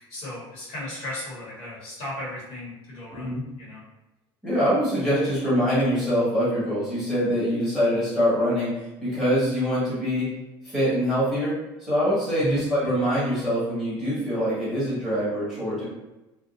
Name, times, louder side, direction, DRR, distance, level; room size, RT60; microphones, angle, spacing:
voice 1, 0.1-3.8 12.4-12.7, left 1 dB, 60° left, -7 dB, 1.1 m, -35 dB
voice 2, 3.1-3.4 4.4-8.7 9.0-10.3 10.6-15.8, equal, ahead, -12 dB, 1.4 m, -24 dB
2.5 x 2.2 x 2.5 m, 0.99 s
cardioid pair, 160°, 10 cm